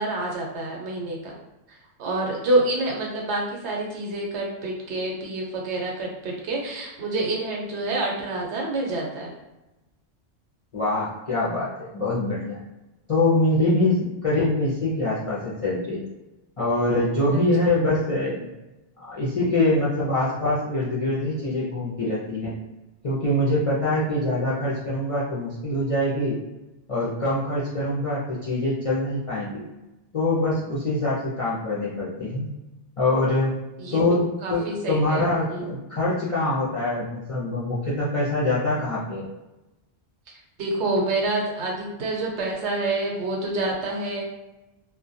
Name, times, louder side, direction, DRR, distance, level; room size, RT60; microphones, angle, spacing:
voice 1, 0.0-1.3 2.0-9.3 17.3-17.4 33.8-34.0 34.4-35.7 40.6-44.2, right 2 dB, 80° right, -1 dB, 1.0 m, -27 dB
voice 2, 10.7-12.6 13.1-16.0 16.6-18.5 19.0-22.5 23.0-26.3 26.9-29.6 30.1-32.5 33.0-33.5 33.9-34.6 34.9-39.3, left 2 dB, 50° left, -8 dB, 0.4 m, -24 dB
2.2 x 2.1 x 2.6 m, 1.0 s
omnidirectional pair, 1.1 m